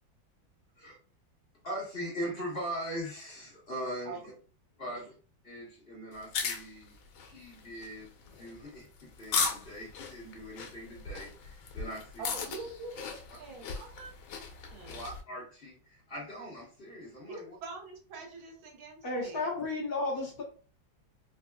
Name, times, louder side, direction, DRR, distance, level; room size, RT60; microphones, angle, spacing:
voice 1, 1.6-4.2 4.8-5.1 5.4-6.9 7.2-8.9 9.2-12.5 14.9-17.6, equal, 35° left, -5 dB, 1.5 m, -41 dB
sound 1, 6.1-15.2, left 5 dB, 90° left, 1.5 m, -37 dB
voice 2, 12.2-14.1 14.7-15.0 17.3-19.4, right 3 dB, 90° right, 1 dB, 1.8 m, -44 dB
voice 3, 19.0-20.4, left 2 dB, 55° left, -3 dB, 1.5 m, -32 dB
4.5 x 2.7 x 2.3 m, 0.39 s
omnidirectional pair, 2.1 m